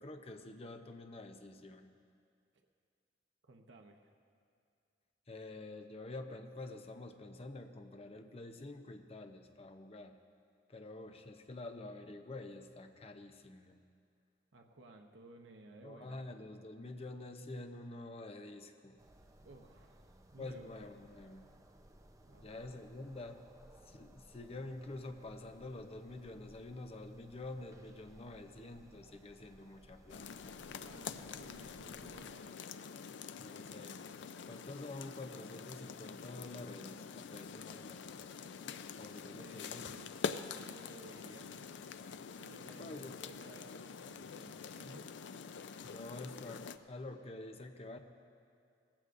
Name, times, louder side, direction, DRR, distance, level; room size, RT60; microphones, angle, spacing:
voice 1, 0.0-1.9 5.3-10.2 10.7-13.8 15.8-19.0 20.4-21.5 22.4-23.5 23.8-30.3 33.4-34.1 34.4-38.1 39.0-39.8 42.8-43.4 45.8-48.0, left 2 dB, 35° left, 7 dB, 0.7 m, -48 dB
voice 2, 3.4-4.1 14.5-16.2 19.4-20.7 22.3-22.7 30.6-32.7 39.3-41.6 42.3-45.1, right 2 dB, 75° right, 2 dB, 0.8 m, -57 dB
sound 1, 19.0-32.4, right 1 dB, 20° right, 0.7 m, -61 dB
sound 2, 30.1-46.8, left 6 dB, 70° left, 0.4 m, -46 dB
19.0 x 14.5 x 2.6 m, 2.4 s
head